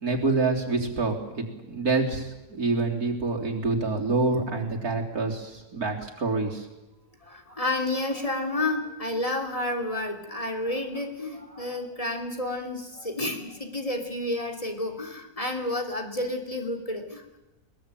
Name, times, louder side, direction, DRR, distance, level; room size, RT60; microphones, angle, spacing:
voice 1, 0.0-6.7, right 3 dB, 80° right, 0 dB, 4.2 m, -27 dB
voice 2, 7.2-17.4, left 2 dB, 25° left, 3 dB, 3.3 m, -30 dB
21.5 x 21.5 x 9.2 m, 1.0 s
omnidirectional pair, 1.6 m